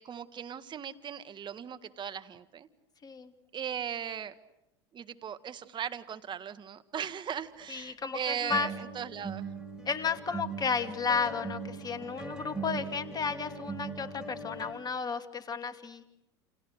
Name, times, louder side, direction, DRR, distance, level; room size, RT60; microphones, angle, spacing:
voice 1, 0.0-2.7 3.5-4.3 4.9-9.5, right 8 dB, 30° right, 11 dB, 1.8 m, -38 dB
sound 1, 7.6-7.7 8.5-14.7, right 4 dB, 5° right, 5.9 m, -40 dB
voice 2, 7.7-8.7 9.9-16.0, left 6 dB, 25° left, 8 dB, 2.7 m, -33 dB
29.5 x 29.0 x 6.7 m, 0.89 s
hypercardioid pair, 85°, 15 cm